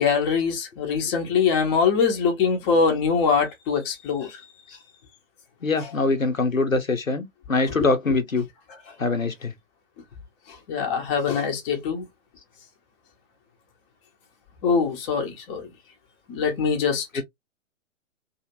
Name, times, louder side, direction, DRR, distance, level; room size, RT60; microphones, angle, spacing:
voice 1, 0.0-4.4 7.8-7.9 10.7-12.0 14.6-15.7 16.3-17.1, left 5 dB, 20° left, 0.8 m, -23 dB
voice 2, 5.6-8.5 9.0-9.5 17.1-17.2, left 3 dB, 90° left, 0.8 m, -23 dB
2.8 x 2.5 x 2.8 m
figure-of-eight pair, 120°, 39 cm